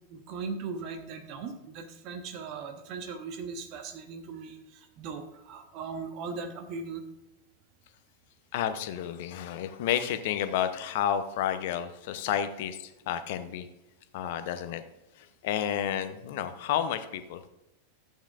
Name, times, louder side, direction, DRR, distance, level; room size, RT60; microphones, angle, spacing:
voice 1, 0.0-7.0, right 4 dB, 40° right, 5 dB, 1.3 m, -39 dB
voice 2, 8.5-13.7 14.1-14.8 15.2-17.5, left 10 dB, 50° left, 11 dB, 0.7 m, -31 dB
13.0 x 8.5 x 2.5 m, 0.90 s
figure-of-eight pair, 90°, 0 cm